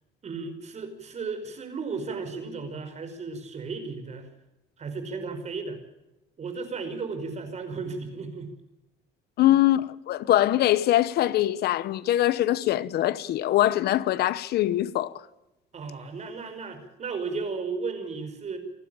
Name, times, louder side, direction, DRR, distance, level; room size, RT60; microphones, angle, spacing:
voice 1, 0.2-4.3 4.8-5.8 6.4-8.5 9.4-9.5 15.7-18.6, right 4 dB, 40° right, 5.3 m, -34 dB
voice 2, 9.4-15.2, left 14 dB, 70° left, 1.0 m, -23 dB
27.5 x 12.0 x 8.9 m
cardioid pair, 110°, 17 cm